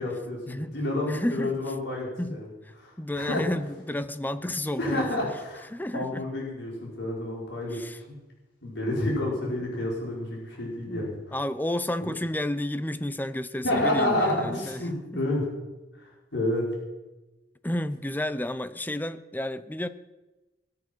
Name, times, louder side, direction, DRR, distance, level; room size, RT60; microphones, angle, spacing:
voice 1, 0.0-2.5 2.8-3.4 4.8-5.6 5.9-7.8 8.1-8.2 8.6-11.1 12.0-12.1 13.6-15.4 16.0-16.7, left 1 dB, 85° left, -3 dB, 5.8 m, -29 dB
voice 2, 1.1-1.6 2.2-2.4 3.0-5.1 5.7-6.3 7.7-8.0 9.4-9.5 10.9-15.3 17.6-19.9, left 1 dB, 10° left, 13 dB, 0.7 m, -31 dB
21.0 x 8.8 x 6.3 m, 1.1 s
head